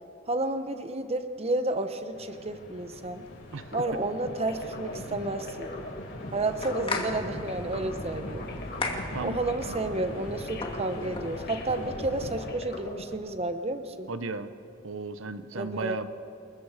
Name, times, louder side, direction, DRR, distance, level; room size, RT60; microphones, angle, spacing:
voice 1, 0.3-3.2 3.7-5.8 6.3-8.4 9.2-14.1 15.6-16.0, right 2 dB, 30° right, 9 dB, 1.0 m, -31 dB
sound 1, 2.1-12.5, left 1 dB, 80° left, 6.5 m, -41 dB
sound 2, 3.5-13.2, left 1 dB, 50° left, 2.3 m, -42 dB
sound 3, 6.3-11.9, left 3 dB, 25° left, 2.3 m, -38 dB
voice 2, 14.1-14.5 14.8-16.1, right 3 dB, 75° right, 11 dB, 1.0 m, -34 dB
28.5 x 21.5 x 5.0 m, 2.6 s
head